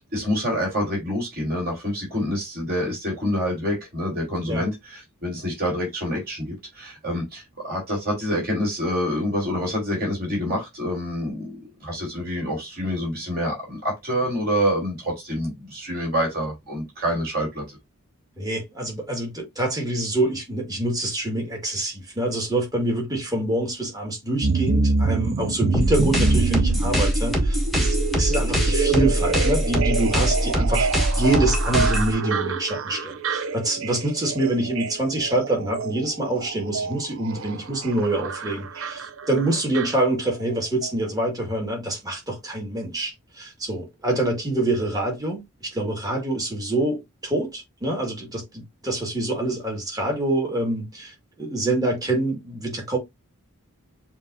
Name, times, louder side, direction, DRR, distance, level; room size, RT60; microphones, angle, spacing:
voice 1, 0.0-17.8, equal, 45° right, 3.5 m, -27 dB
voice 2, 18.4-53.0, right 1 dB, 15° right, 1.9 m, -26 dB
sound 1, 24.4-40.5 40.8-40.9, right 4 dB, 65° right, 0.6 m, -27 dB
sound 2, 25.7-32.1, equal, ahead, 1.2 m, -23 dB
7.1 x 2.9 x 2.6 m
head